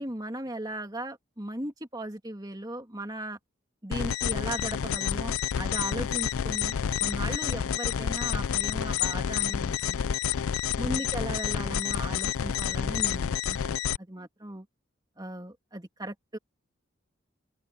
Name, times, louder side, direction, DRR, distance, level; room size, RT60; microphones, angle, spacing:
voice 1, 0.0-3.4 3.8-10.1 10.8-14.7 15.2-16.4, right 1 dB, 20° right, 2.7 m, -37 dB
sound 1, 3.9-14.0, left 8 dB, 85° left, 0.4 m, -29 dB
open air
head